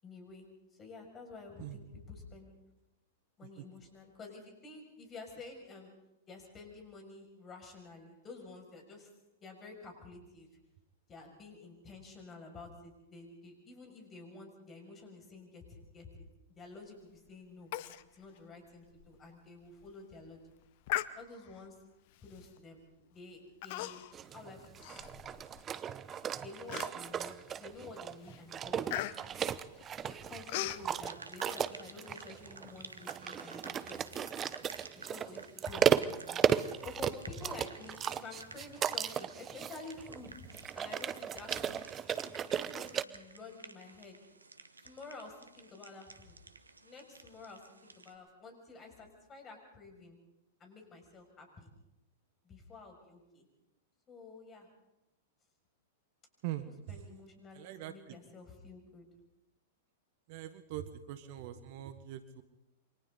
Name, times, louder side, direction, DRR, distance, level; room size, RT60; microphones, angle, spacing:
voice 1, 0.0-0.5 0.8-2.5 3.4-5.9 6.3-9.1 9.4-10.5 11.1-16.1 16.5-17.7 18.1-20.4 21.1-21.8 22.2-22.8 23.1-24.1 24.3-24.7 26.4-29.1 30.0-34.3 34.9-36.4 36.8-40.5 40.7-41.9 42.2-44.2 44.8-46.4 46.8-50.2 50.6-51.7 52.4-53.4 54.1-54.7 56.9-59.1, left 3 dB, 25° left, 3 dB, 6.5 m, -50 dB
Human voice, 17.7-18.0 18.4-18.5 19.0-19.1 19.6-19.9 20.9-21.6 22.4-22.6 23.6-24.2 24.6-25.6 26.1-26.2 26.7-27.3 27.7-28.0 28.2-30.9, left 15 dB, 50° left, 0.8 m, -39 dB
sound 1, 24.1-43.0, right 9 dB, 25° right, 0.8 m, -35 dB
sound 2, 31.1-48.2, right 3 dB, 85° right, 1.3 m, -53 dB
voice 2, 56.4-57.0 57.5-58.2 60.3-62.4, right 12 dB, 50° right, 11 dB, 1.5 m, -42 dB
28.5 x 24.5 x 4.1 m, 0.94 s
figure-of-eight pair, 100°, 0 cm